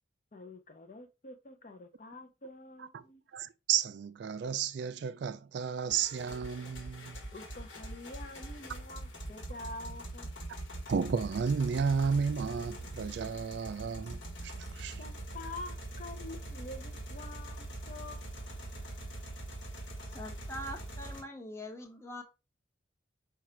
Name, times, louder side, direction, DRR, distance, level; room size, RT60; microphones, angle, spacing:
voice 1, 0.3-3.2 7.3-10.3 15.0-18.3, left 2 dB, 40° left, 0.6 m, -47 dB
voice 2, 3.3-7.2 10.9-15.0, right 6 dB, 60° right, 0.3 m, -32 dB
sound 1, 5.9-21.2, right 1 dB, 70° left, 1.3 m, -43 dB
voice 3, 20.1-22.2, equal, 15° left, 0.8 m, -43 dB
4.9 x 2.3 x 4.3 m
head